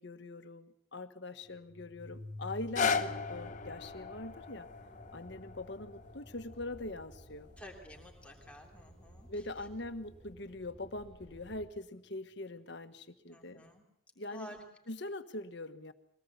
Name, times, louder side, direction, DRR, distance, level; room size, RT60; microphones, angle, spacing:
voice 1, 0.0-4.7 5.1-7.5 9.3-13.6 14.2-14.5 14.9-15.9, left 2 dB, 60° left, 9 dB, 1.4 m, -42 dB
sound 1, 1.4-9.8, left 2 dB, 50° right, 1.6 m, -52 dB
sound 2, 2.5-8.6 9.2-9.3, left 5 dB, 40° left, 1.0 m, -38 dB
sound 3, 2.7-11.7, right 1 dB, 30° right, 3.0 m, -57 dB
voice 2, 7.6-9.3 13.3-13.8 14.3-14.6, equal, 5° left, 0 dB, 3.2 m, -51 dB
22.5 x 18.0 x 8.2 m, 0.74 s
head